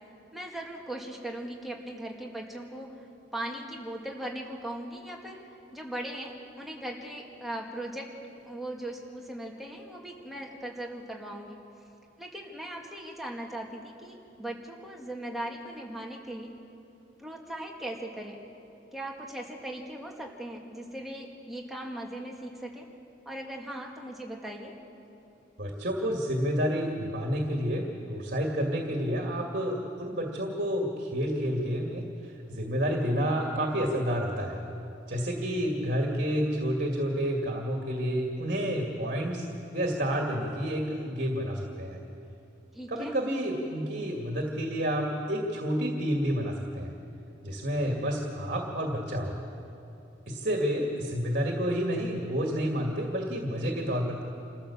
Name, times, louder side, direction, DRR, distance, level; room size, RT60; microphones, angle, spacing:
voice 1, 0.3-2.9 3.3-5.4 5.7-8.1 8.4-11.6 12.2-16.5 17.2-18.4 18.9-22.9 23.3-24.8 42.7-43.1, right 1 dB, ahead, -1 dB, 2.1 m, -39 dB
voice 2, 25.6-34.6 35.1-39.5 39.7-42.0 42.9-46.9 47.4-49.4 50.3-54.2, equal, 50° right, 1 dB, 2.2 m, -29 dB
28.0 x 14.5 x 7.2 m, 2.7 s
head